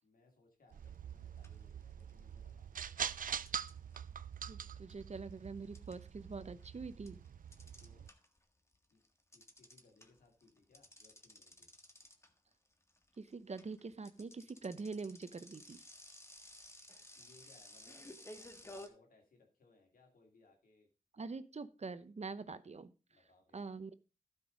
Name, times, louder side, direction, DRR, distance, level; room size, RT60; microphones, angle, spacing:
voice 1, 0.0-2.7 7.8-8.1 8.9-9.0 9.3-11.7 17.2-18.2 18.6-20.9 23.1-23.6, left 3 dB, 90° left, 1 dB, 2.6 m, -67 dB
sound 1, 0.7-8.1, right 8 dB, 75° right, 0.4 m, -45 dB
sound 2, 0.9-1.1 1.4-2.4 3.1-8.4 8.7-18.9, left 1 dB, 20° left, 1.6 m, -55 dB
voice 2, 4.5-7.2 13.2-15.8 21.1-22.9 23.5-23.9, right 4 dB, 50° right, 13 dB, 0.8 m, -45 dB
12.0 x 5.3 x 5.1 m, 0.33 s
cardioid pair, 45°, 14 cm